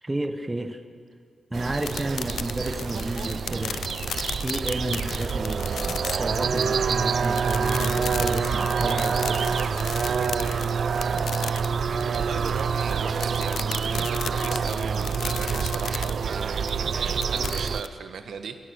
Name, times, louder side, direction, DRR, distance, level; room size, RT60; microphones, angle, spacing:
voice 1, 0.0-0.8 1.5-3.9 4.4-9.5, right 1 dB, 15° right, 7 dB, 1.1 m, -31 dB
sound 1, 1.5-17.8, right 6 dB, 55° right, 0.7 m, -27 dB
sound 2, 1.8-17.9, left 8 dB, 80° left, 0.6 m, -35 dB
voice 2, 12.1-18.6, right 6 dB, 80° right, 7 dB, 1.6 m, -37 dB
27.0 x 21.5 x 6.5 m, 2.1 s
wide cardioid pair, 170°, 0 cm